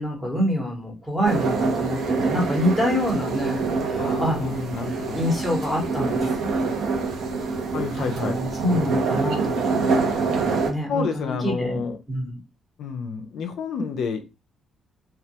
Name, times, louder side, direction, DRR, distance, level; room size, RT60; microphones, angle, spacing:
voice 1, 0.0-4.7 5.1-6.5 8.0-9.9 10.7-11.8 12.1-12.3, equal, ahead, 0.8 m, -26 dB
sound 1, 1.2-10.7, right 4 dB, 70° right, 0.5 m, -25 dB
voice 2, 4.0-5.2 7.7-8.4 10.9-12.0 12.8-14.2, left 5 dB, 70° left, 0.3 m, -29 dB
2.2 x 2.1 x 2.7 m
cardioid pair, 160°, 0 cm